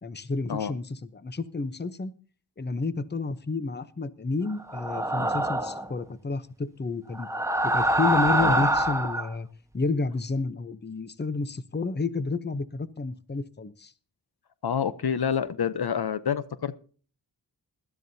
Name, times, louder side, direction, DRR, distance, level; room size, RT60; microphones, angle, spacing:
voice 1, 0.0-2.1 2.6-7.3 7.6-9.5 9.7-13.9, left 3 dB, 25° left, 0.8 m, -30 dB
sound 1, 4.7-5.9 7.1-9.3, right 1 dB, 5° right, 1.2 m, -25 dB
voice 2, 14.6-16.7, left 7 dB, 65° left, 0.8 m, -28 dB
20.0 x 12.5 x 2.7 m
wide cardioid pair, 100°, 41 cm